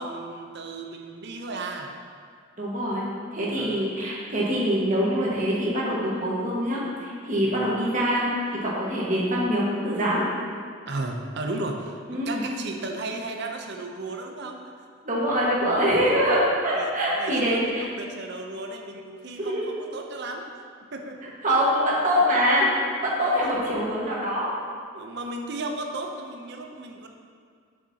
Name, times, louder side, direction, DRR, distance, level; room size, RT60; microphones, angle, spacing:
voice 1, 0.0-1.9 3.6-3.8 7.4-7.7 10.9-14.6 16.7-20.5 20.9-21.3 23.2-23.7 24.9-27.1, right 2 dB, 55° right, 3 dB, 0.6 m, -35 dB
voice 2, 2.6-3.0 3.3-10.2 12.1-12.4 15.0-17.9 19.4-19.7 21.4-24.5, equal, 40° right, -6 dB, 1.5 m, -24 dB
7.5 x 6.6 x 2.8 m, 2.1 s
head